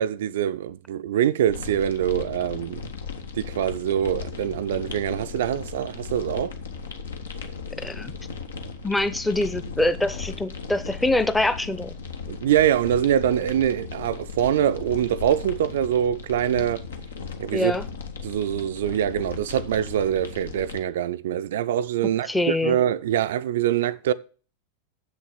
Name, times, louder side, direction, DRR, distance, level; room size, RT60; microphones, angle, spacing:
voice 1, 0.0-2.9 3.3-6.5 12.3-16.8 17.4-17.7 18.2-24.1, right 10 dB, 60° right, 0.4 m, -24 dB
sound 1, 1.5-20.8, left 5 dB, 65° left, 1.2 m, -37 dB
voice 2, 7.8-8.1 8.8-11.9 17.5-17.8 22.3-22.8, left 1 dB, 5° left, 0.8 m, -24 dB
7.7 x 6.5 x 7.1 m
figure-of-eight pair, 90°, 0 cm